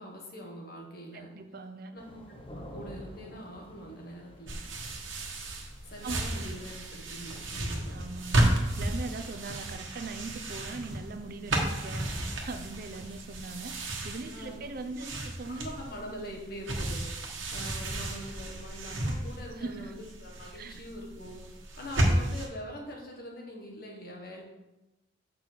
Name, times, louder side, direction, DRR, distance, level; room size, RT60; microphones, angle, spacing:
voice 1, 0.0-1.3 1.9-4.6 5.9-8.0 14.3-14.6 14.9-15.0 15.5-21.4 21.8-24.4, equal, 50° left, 0 dB, 1.5 m, -43 dB
voice 2, 1.1-1.9 6.0-6.5 7.9-15.6 19.5-20.0 20.5-20.8, right 3 dB, 50° right, 8 dB, 0.5 m, -41 dB
sound 1, 2.0-15.9, equal, 30° left, 0.9 m, -53 dB
sound 2, 4.5-22.5, right 1 dB, 85° right, 1.4 m, -33 dB
6.6 x 5.3 x 4.5 m, 1.0 s
head